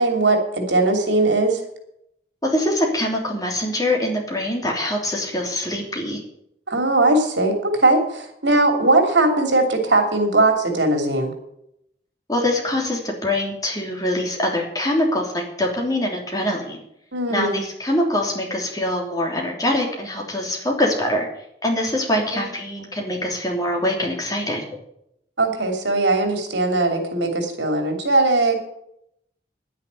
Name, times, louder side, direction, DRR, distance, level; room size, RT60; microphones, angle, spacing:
voice 1, 0.0-1.6 6.7-11.3 17.1-17.6 22.3-22.5 25.4-28.6, right 2 dB, 85° right, 5 dB, 2.9 m, -19 dB
voice 2, 2.4-6.2 12.3-16.8 17.3-21.3 21.6-24.6, left 1 dB, 20° left, 0 dB, 3.1 m, -24 dB
10.5 x 9.7 x 8.3 m, 0.76 s
head